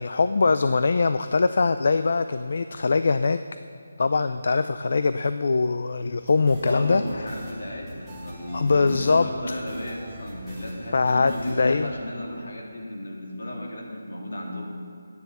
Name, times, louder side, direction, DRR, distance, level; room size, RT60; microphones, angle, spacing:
voice 1, 0.0-3.4 4.0-7.0 8.5-9.3 10.9-11.9, left 4 dB, 50° left, 11 dB, 0.4 m, -22 dB
sound 1, 6.2-11.8, equal, ahead, 1.9 m, -42 dB
voice 2, 6.6-14.7, left 1 dB, 70° left, -2 dB, 3.2 m, -34 dB
11.5 x 9.6 x 6.9 m, 2.5 s
figure-of-eight pair, 175°, 0 cm